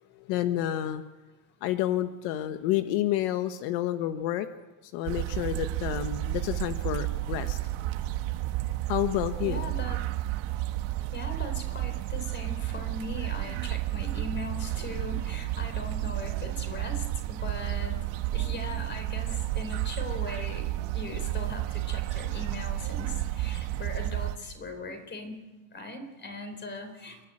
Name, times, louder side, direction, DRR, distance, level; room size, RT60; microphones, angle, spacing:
voice 1, 0.2-1.0 1.6-4.5 4.8-7.6 8.9-9.6, left 13 dB, 80° left, 9 dB, 1.3 m, -29 dB
sound 1, 5.0-24.4, right 15 dB, 65° right, 1.4 m, -31 dB
voice 2, 9.4-10.1 11.1-18.1 18.3-25.4 25.7-27.2, left 2 dB, 20° left, 6 dB, 4.2 m, -39 dB
30.0 x 11.5 x 8.9 m, 1.2 s
cardioid pair, 150°, 49 cm